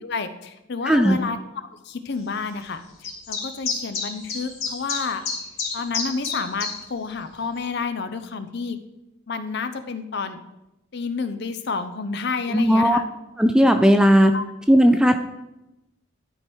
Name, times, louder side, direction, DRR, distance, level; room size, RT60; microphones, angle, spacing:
voice 1, 0.0-2.8 3.3-5.2 5.7-8.8 9.3-10.4 10.9-13.0 14.3-14.4, left 4 dB, 55° left, 10 dB, 0.6 m, -30 dB
voice 2, 0.9-1.2 12.5-13.0 13.4-14.3 14.7-15.2, equal, 5° right, 7 dB, 0.4 m, -16 dB
sound 1, 3.0-6.7, left 4 dB, 85° left, 3.0 m, -28 dB
11.5 x 4.7 x 4.5 m, 0.95 s
head